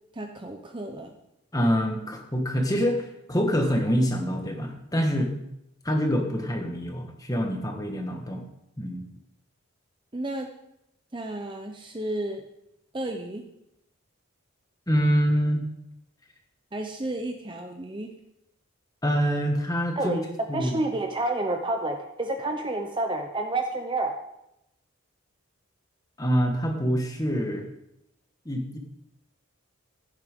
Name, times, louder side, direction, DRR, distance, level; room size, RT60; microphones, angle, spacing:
voice 1, 0.1-1.1 10.1-10.5 11.1-12.4 12.9-13.4 16.7-18.1 20.0-20.2 20.5-24.1, right 2 dB, 20° right, 4 dB, 0.8 m, -30 dB
voice 2, 1.5-5.3 5.8-8.4 8.8-9.0 14.9-15.6 19.0-20.2 20.5-20.7 26.2-27.7 28.4-28.8, equal, 15° left, 3 dB, 1.5 m, -25 dB
15.5 x 9.6 x 3.8 m, 0.83 s
head